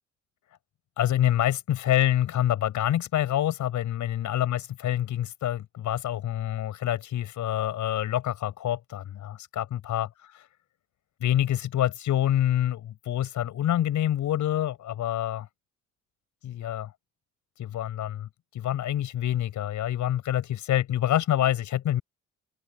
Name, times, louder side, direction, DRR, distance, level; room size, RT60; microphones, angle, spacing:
voice 1, 1.0-10.5 11.2-15.5 16.4-16.9 17.6-22.0, left 12 dB, 75° left, 7.0 m, -27 dB
cardioid pair, 90°, 30 cm